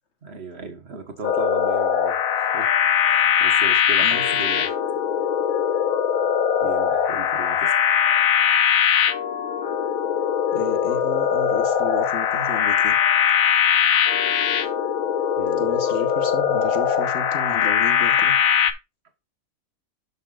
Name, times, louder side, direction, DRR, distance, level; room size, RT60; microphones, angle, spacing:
voice 1, 0.2-2.7 3.0-5.0 6.6-7.7 15.4-15.7, right 3 dB, 50° right, 1.7 m, -37 dB
sound 1, 1.2-18.7, left 8 dB, 80° left, 1.2 m, -21 dB
voice 2, 10.5-13.0 15.6-18.4, left 3 dB, 55° left, 1.6 m, -32 dB
11.0 x 6.0 x 2.5 m
omnidirectional pair, 1.4 m